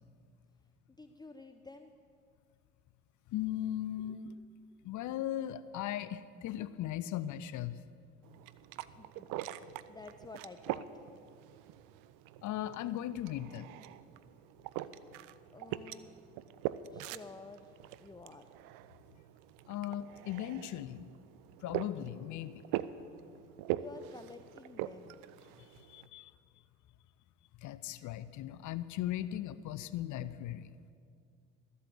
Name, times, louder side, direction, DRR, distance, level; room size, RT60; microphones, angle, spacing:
voice 1, 1.0-1.9 4.0-4.1 8.8-9.3 9.9-11.1 15.5-16.1 16.9-17.7 18.0-18.5 23.7-25.2, left 3 dB, 10° left, 7 dB, 0.6 m, -51 dB
voice 2, 3.3-4.3 4.8-7.8 12.4-13.7 19.7-21.1 21.6-22.6 25.8-26.3 27.6-30.7, left 12 dB, 60° left, 15 dB, 0.6 m, -38 dB
sound 1, 8.2-26.1, right 13 dB, 70° right, 0.6 m, -43 dB
13.5 x 8.4 x 7.8 m, 2.2 s
hypercardioid pair, 65°, 34 cm